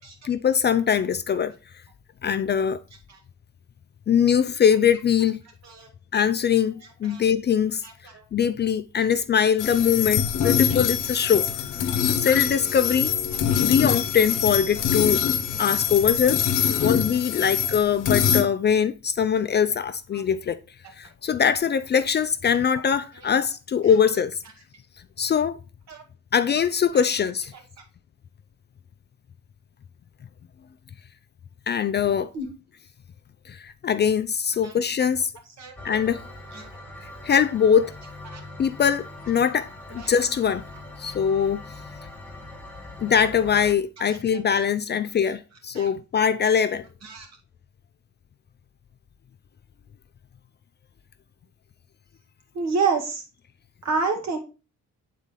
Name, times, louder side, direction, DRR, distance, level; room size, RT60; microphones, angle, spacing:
voice 1, 0.2-1.5 2.2-2.8 4.1-5.4 6.1-7.8 8.3-11.5 12.0-13.1 13.6-15.2 15.6-20.6 21.0-24.4 25.2-25.6 26.3-27.5 31.7-32.3 33.5-35.3 35.8-36.2 37.0-37.9 38.6-40.6 41.0-41.6 43.0-46.9, left 7 dB, 35° left, 0.4 m, -22 dB
sound 1, 9.6-18.4, left 8 dB, 80° left, 0.8 m, -24 dB
sound 2, 35.8-43.7, left 2 dB, 5° left, 1.2 m, -42 dB
voice 2, 52.6-53.2 53.9-54.4, right 4 dB, 60° right, 2.0 m, -26 dB
7.2 x 4.2 x 3.7 m
cardioid pair, 90°, 30 cm